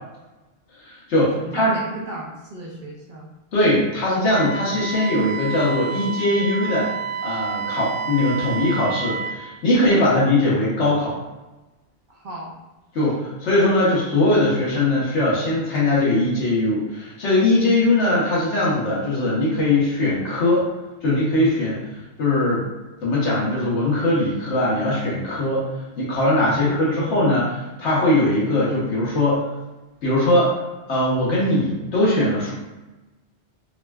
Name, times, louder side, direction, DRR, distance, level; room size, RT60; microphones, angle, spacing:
voice 1, 0.8-1.7 3.5-6.9 7.2-11.2 12.9-20.7 21.0-22.6 23.0-25.7 26.0-29.5 30.0-30.6 30.9-32.5, left 1 dB, 80° left, -7 dB, 1.3 m, -20 dB
voice 2, 1.4-3.3 10.0-10.2 12.1-12.5 26.4-27.1, right 2 dB, 50° right, -3 dB, 0.7 m, -35 dB
Wind instrument woodwind instrument, 4.3-9.4, right 5 dB, 90° right, 1.0 m, -29 dB
3.6 x 2.2 x 2.2 m, 1.1 s
omnidirectional pair, 1.2 m